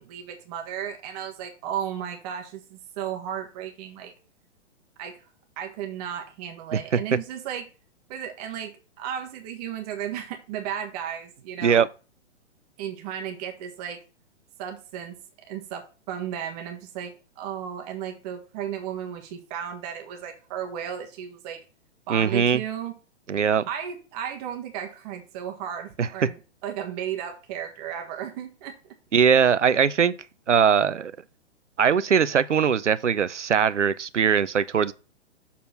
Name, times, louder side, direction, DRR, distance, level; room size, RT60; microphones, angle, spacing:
voice 1, 0.0-4.1 5.0-5.2 5.6-7.7 8.1-11.8 12.8-14.0 14.6-15.1 15.5-21.6 22.1-23.0 23.7-28.7, right 9 dB, 35° right, 1.5 m, -34 dB
voice 2, 22.1-22.6 23.3-23.6 26.0-26.1 29.1-30.1 30.5-31.1 31.8-34.9, right 7 dB, 90° right, 0.6 m, -21 dB
7.2 x 4.2 x 5.6 m
figure-of-eight pair, 120°, 35 cm